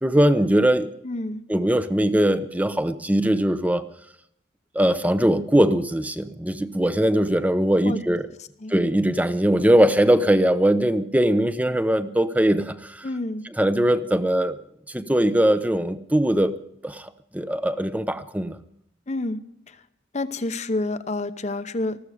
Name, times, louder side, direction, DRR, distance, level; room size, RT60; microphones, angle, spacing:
voice 1, 0.0-0.9 1.5-3.8 4.7-8.3 8.7-13.1 13.6-14.6 14.9-16.6 16.8-18.6, right 1 dB, 10° right, 12 dB, 0.7 m, -21 dB
voice 2, 1.0-1.4 7.8-8.0 8.6-8.8 13.0-13.4 19.1-19.4 19.7-19.8 20.1-22.0, left 2 dB, 35° left, 11 dB, 0.8 m, -28 dB
20.0 x 14.5 x 5.0 m, 0.74 s
head